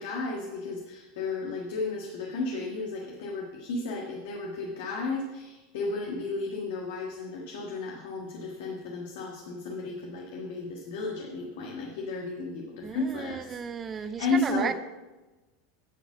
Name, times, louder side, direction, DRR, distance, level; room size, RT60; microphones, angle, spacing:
voice 1, 0.0-14.7, left 3 dB, 75° left, 0 dB, 1.5 m, -33 dB
voice 2, 12.8-14.7, right 6 dB, 20° right, 11 dB, 0.4 m, -34 dB
9.9 x 5.0 x 7.2 m, 1.2 s
supercardioid pair, 155°, 0 cm